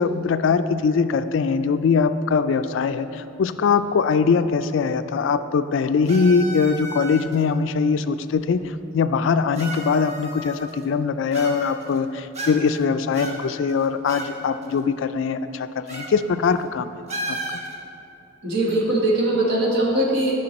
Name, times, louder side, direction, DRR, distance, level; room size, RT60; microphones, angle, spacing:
voice 1, 0.0-16.9 17.3-17.4, left 5 dB, 65° left, 11 dB, 0.3 m, -22 dB
sound 1, 6.1-7.4 8.4-8.5 9.5-10.8 11.3-12.0 12.3-12.8 13.1-14.3 14.6-14.7 15.9-16.1 16.4-16.6 17.1-17.7, right 1 dB, 35° right, 1.0 m, -33 dB
voice 2, 18.4-20.3, right 1 dB, 55° right, -3 dB, 1.5 m, -21 dB
10.5 x 5.8 x 4.2 m, 2.8 s
head